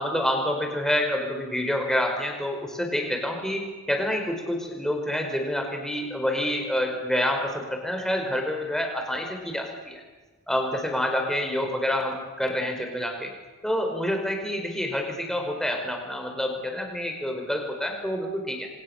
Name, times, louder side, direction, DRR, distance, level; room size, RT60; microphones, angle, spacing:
voice 1, 0.0-10.0 10.5-13.3 13.6-18.7, left 1 dB, ahead, 3 dB, 4.9 m, -27 dB
28.5 x 25.5 x 7.3 m, 1.3 s
head